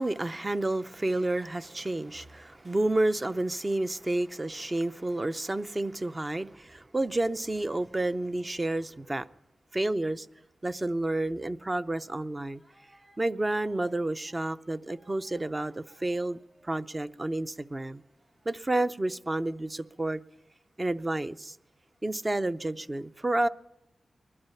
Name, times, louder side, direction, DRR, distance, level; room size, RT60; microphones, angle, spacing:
voice 1, 0.0-9.3 9.7-10.3 10.6-12.6 13.2-16.4 16.6-18.0 18.5-20.2 20.8-21.6 22.0-23.5, right 2 dB, 25° right, 0.5 m, -30 dB
sound 1, 11.8-12.2 12.5-19.1, right 1 dB, 55° right, 7.2 m, -65 dB
20.0 x 12.0 x 5.7 m
cardioid pair, 75°, 0 cm